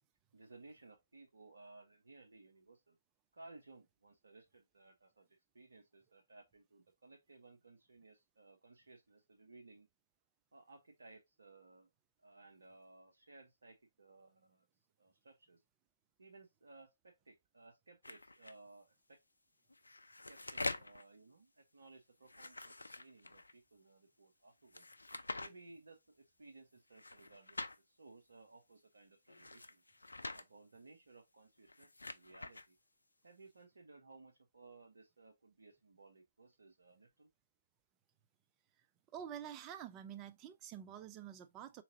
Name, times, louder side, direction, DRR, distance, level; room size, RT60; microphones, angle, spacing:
voice 1, 0.3-3.0 3.3-9.9 10.5-11.9 12.2-14.7 15.0-15.6 16.2-19.2 20.3-24.8 25.4-29.8 30.3-32.8 33.2-37.3, right 3 dB, 60° right, 0.7 m, -60 dB
sound 1, 18.0-18.5 19.7-21.0 22.2-23.5 24.7-25.5 26.9-27.8 29.3-30.4 31.6-32.7, left 2 dB, 75° left, 0.4 m, -45 dB
voice 2, 39.1-41.8, right 9 dB, 20° right, 0.3 m, -48 dB
3.7 x 3.0 x 2.6 m
figure-of-eight pair, 135°, 0 cm